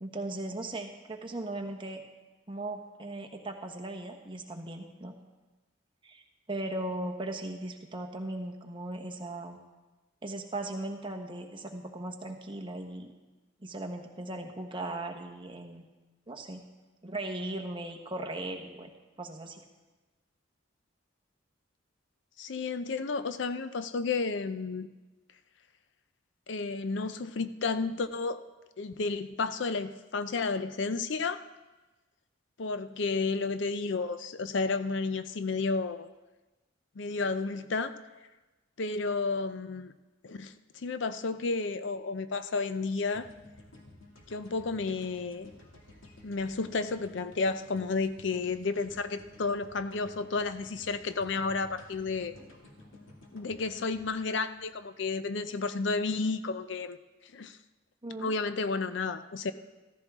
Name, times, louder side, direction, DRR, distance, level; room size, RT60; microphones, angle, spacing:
voice 1, 0.0-2.0 2.5-5.1 6.0-6.2 6.5-9.6 10.2-13.1 13.6-15.8 16.3-16.6 17.0-18.9 19.2-19.6 58.0-58.3, right 2 dB, 25° right, 3 dB, 1.1 m, -38 dB
voice 2, 22.4-24.9 26.5-28.4 28.8-31.4 32.6-36.1 37.0-37.9 38.8-39.9 40.2-43.3 44.3-45.5 46.2-52.3 53.3-57.0 57.2-57.6 58.2-59.5, left 4 dB, 65° left, 11 dB, 0.5 m, -32 dB
sound 1, 43.1-55.4, left 2 dB, 85° left, 2.2 m, -54 dB
15.0 x 14.5 x 3.6 m, 1.1 s
head